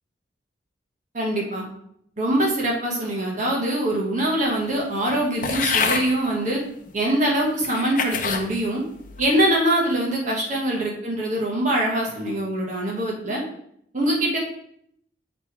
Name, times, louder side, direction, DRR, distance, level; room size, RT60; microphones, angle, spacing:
voice 1, 1.1-1.6 2.2-6.6 6.9-8.8 9.2-13.4 13.9-14.4, right 1 dB, 45° right, -2 dB, 1.3 m, -23 dB
sound 1, 5.4-6.1 6.9-7.0 7.6-8.5 9.0-9.4, left 5 dB, 50° left, 0.7 m, -25 dB
8.2 x 3.3 x 4.6 m, 0.70 s
head